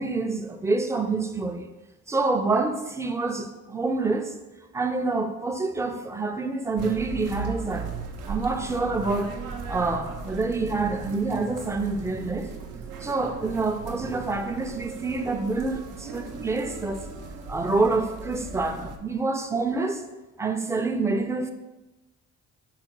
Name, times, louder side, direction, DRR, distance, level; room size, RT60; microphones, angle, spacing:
voice 1, 0.0-1.7 2.1-4.3 4.7-7.9 8.3-9.3 9.7-12.5 13.0-17.1 17.5-20.0 20.4-21.5, right 3 dB, 10° right, 6 dB, 0.3 m, -27 dB
sound 1, 6.8-19.0, right 4 dB, 90° right, 0.6 m, -37 dB
4.7 x 2.1 x 4.4 m, 1.0 s
cardioid pair, 90°, 30 cm